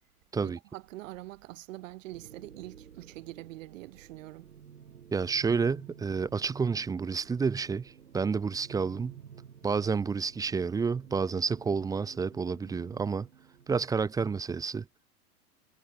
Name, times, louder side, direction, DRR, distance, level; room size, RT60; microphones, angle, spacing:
voice 1, 0.4-4.5, right 17 dB, 60° right, 2.1 m, -44 dB
sound 1, 2.1-14.1, right 8 dB, 80° right, 3.8 m, -52 dB
voice 2, 5.1-9.2 9.6-13.3 13.7-14.9, right 5 dB, 10° right, 0.5 m, -30 dB
hypercardioid pair, 100°, 44 cm